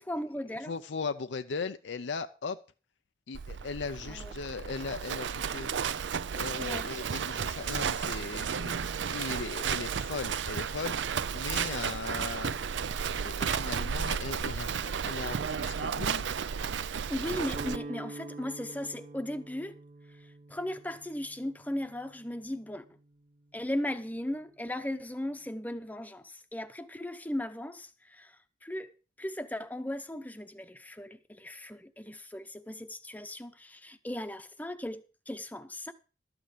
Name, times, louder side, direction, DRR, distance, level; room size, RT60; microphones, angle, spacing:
voice 1, 0.0-0.7 4.0-4.3 6.6-6.9 17.1-19.8 20.1-22.8 23.5-28.9 29.2-35.9, left 1 dB, 10° left, 0.8 m, -37 dB
voice 2, 0.7-2.6 3.3-5.7 6.3-12.6 13.2-16.2, left 4 dB, 80° left, 0.5 m, -38 dB
Livestock farm animals working animals, 3.3-17.8, right 7 dB, 80° right, 0.5 m, -33 dB
Guitar, 17.5-23.5, right 2 dB, 45° right, 1.0 m, -46 dB
12.5 x 9.0 x 5.0 m
head